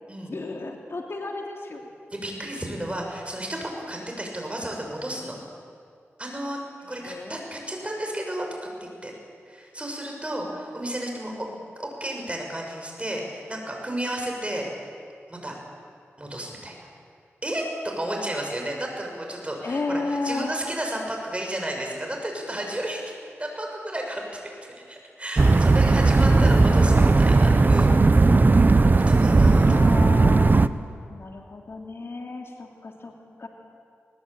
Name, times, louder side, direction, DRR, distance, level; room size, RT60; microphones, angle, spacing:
voice 1, 0.3-1.8 6.9-7.4 11.3-11.6 19.6-20.5 26.2-27.2 29.5-33.1 33.4-33.5, left 3 dB, 60° left, 2 dB, 2.9 m, -33 dB
voice 2, 2.1-5.4 6.2-6.6 6.9-9.1 9.5-11.5 11.8-14.7 15.3-15.6 16.2-16.7 17.4-23.1 23.4-24.5 24.9-28.1 29.1-29.7, right 1 dB, 25° right, 1 dB, 6.8 m, -32 dB
sound 1, 25.4-30.7, right 3 dB, 40° right, 0.8 m, -17 dB
20.5 x 20.5 x 8.9 m, 2.3 s
cardioid pair, 50°, 5 cm